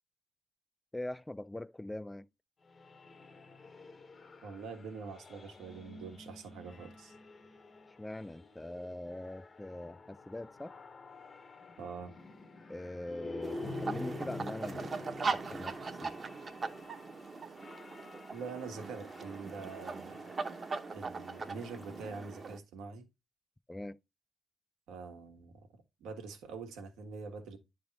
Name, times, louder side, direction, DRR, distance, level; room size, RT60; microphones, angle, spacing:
voice 1, 0.9-2.3 8.0-10.7 12.7-16.2 23.7-24.0, left 1 dB, 10° left, 0.3 m, -42 dB
sound 1, 2.7-22.5, left 3 dB, 35° left, 0.7 m, -49 dB
voice 2, 4.4-7.1 11.8-12.1 18.3-20.3 20.9-23.0 24.9-25.6 26.0-27.6, right 5 dB, 90° right, 1.3 m, -44 dB
sound 2, 13.4-22.6, right 4 dB, 35° right, 0.8 m, -40 dB
10.0 x 3.5 x 4.0 m
cardioid pair, 105°, 0 cm